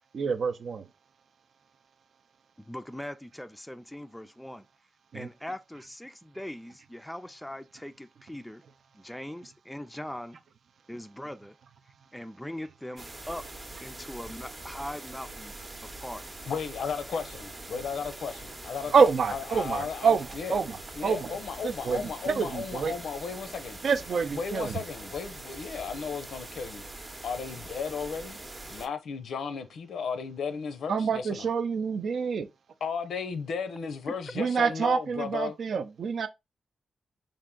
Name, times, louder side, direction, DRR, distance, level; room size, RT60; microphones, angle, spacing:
voice 1, 0.1-0.9 5.1-5.3 18.9-21.3 21.6-22.9 23.8-24.8 30.9-32.5 34.4-36.3, right 5 dB, 65° right, 0.5 m, -27 dB
voice 2, 2.6-4.7 5.1-8.6 8.9-10.4 10.9-11.6 12.1-13.5 13.8-15.5 16.0-16.2 34.3-34.4, left 1 dB, 5° left, 0.4 m, -40 dB
sound 1, 13.0-28.9, right 2 dB, 25° right, 0.7 m, -43 dB
voice 3, 16.5-20.6 20.9-23.8 24.1-26.8 27.2-28.4 28.7-31.5 32.8-35.5, left 6 dB, 85° left, 0.6 m, -35 dB
3.5 x 2.5 x 3.7 m
wide cardioid pair, 115°, 0 cm